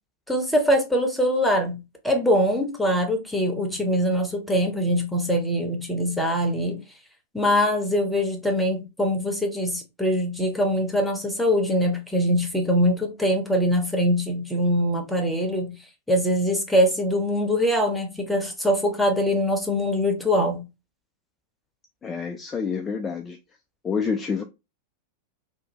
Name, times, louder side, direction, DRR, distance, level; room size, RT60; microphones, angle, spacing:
voice 1, 0.3-6.8 7.3-15.7 16.1-20.7, equal, 5° left, 0.8 m, -23 dB
voice 2, 22.0-23.4 23.8-24.4, left 5 dB, 20° left, 0.3 m, -28 dB
2.7 x 2.1 x 2.9 m
figure-of-eight pair, 90°, 0 cm